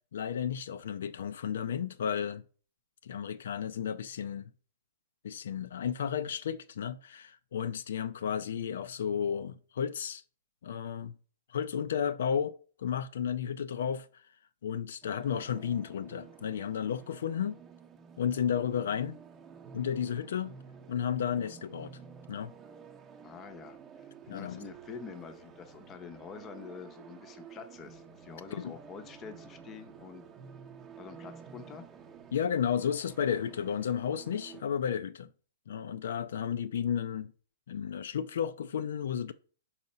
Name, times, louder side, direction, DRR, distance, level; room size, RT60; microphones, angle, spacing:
voice 1, 0.1-2.4 3.0-4.4 5.2-10.2 10.6-11.1 11.5-14.2 14.6-17.6 18.2-19.2 19.7-20.6 20.9-22.0 22.3-22.5 24.3-24.6 28.6-28.7 32.3-35.3 35.7-37.3 37.7-39.3, left 8 dB, 70° left, 0.4 m, -33 dB
sound 1, 15.0-34.6, right 6 dB, 15° right, 0.7 m, -51 dB
voice 2, 23.2-30.2 31.0-31.9, left 6 dB, 15° left, 0.7 m, -47 dB
4.8 x 4.2 x 5.4 m
hypercardioid pair, 165°, 0 cm